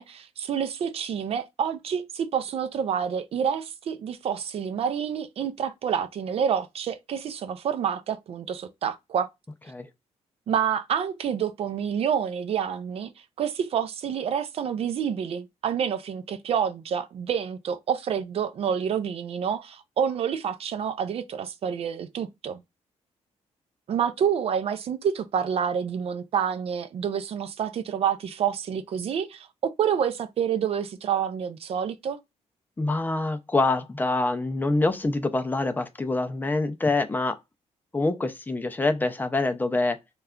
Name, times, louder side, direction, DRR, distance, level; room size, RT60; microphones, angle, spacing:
voice 1, 0.0-9.3 10.5-13.1 13.4-22.6 23.9-32.2, right 8 dB, 60° right, 0.4 m, -28 dB
voice 2, 32.8-37.4 37.9-40.0, left 2 dB, 15° left, 0.4 m, -25 dB
3.2 x 2.3 x 3.6 m
cardioid pair, 120°, 12 cm